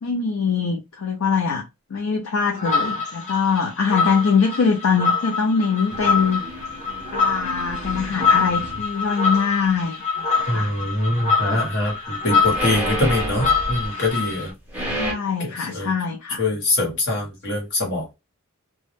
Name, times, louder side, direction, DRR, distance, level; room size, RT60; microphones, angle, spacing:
voice 1, 0.0-1.6 1.9-6.4 7.1-10.7 11.8-11.9 14.9-16.4, left 5 dB, 70° left, 0.4 m, -23 dB
sound 1, 2.6-14.5, left 5 dB, 35° left, 0.8 m, -25 dB
sound 2, 5.9-8.9 12.1-14.1 14.4-15.1, right 1 dB, 10° right, 0.7 m, -31 dB
voice 2, 10.5-14.5 15.4-15.9 16.4-18.1, left 2 dB, 55° left, 1.1 m, -24 dB
2.2 x 2.0 x 3.0 m
head